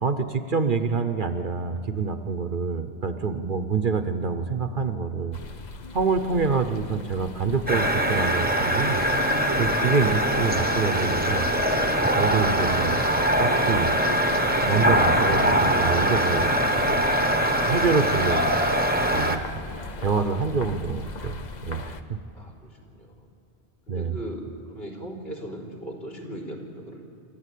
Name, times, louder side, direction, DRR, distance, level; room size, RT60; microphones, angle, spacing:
voice 1, 0.0-5.4 5.9-9.0 9.6-11.5 12.1-13.0 13.4-13.9 14.7-16.5 16.9-17.0 17.7-18.6 19.1-19.4 20.0-21.3 21.6-22.2 23.9-24.2, right 5 dB, 50° right, 8 dB, 1.0 m, -26 dB
sound 1, 5.3-22.0, left 3 dB, 40° left, 0.9 m, -39 dB
voice 2, 6.3-6.6 22.3-23.3 23.9-27.0, right 1 dB, 60° left, -3 dB, 3.8 m, -39 dB
sound 2, 7.7-19.4, equal, 10° right, 1.0 m, -22 dB
27.5 x 13.5 x 8.3 m, 2.8 s
omnidirectional pair, 1.2 m